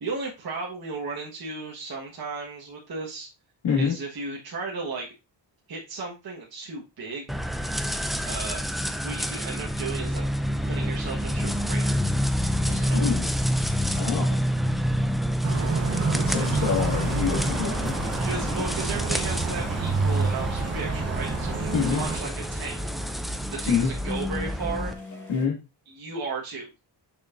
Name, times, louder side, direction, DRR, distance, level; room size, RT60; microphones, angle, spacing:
voice 1, 0.0-3.3 3.8-5.1 5.7-7.3 8.2-8.6 9.0-10.3 10.6-12.0 12.6-13.1 16.4-16.5 18.2-22.8 23.5-24.9 25.9-26.7, right 4 dB, 55° right, -2 dB, 1.5 m, -35 dB
voice 2, 3.6-4.0 12.9-13.3 13.9-14.4 16.1-18.0 21.7-22.0 23.7-23.9 25.3-25.6, left 6 dB, 75° left, -3 dB, 2.1 m, -26 dB
sound 1, 7.3-24.9, equal, ahead, 0.4 m, -28 dB
sound 2, 15.4-22.2, right 4 dB, 35° right, 0.9 m, -29 dB
sound 3, 17.6-25.4, equal, 40° left, 2.2 m, -41 dB
6.6 x 6.4 x 2.6 m, 0.27 s
wide cardioid pair, 150°, 45 cm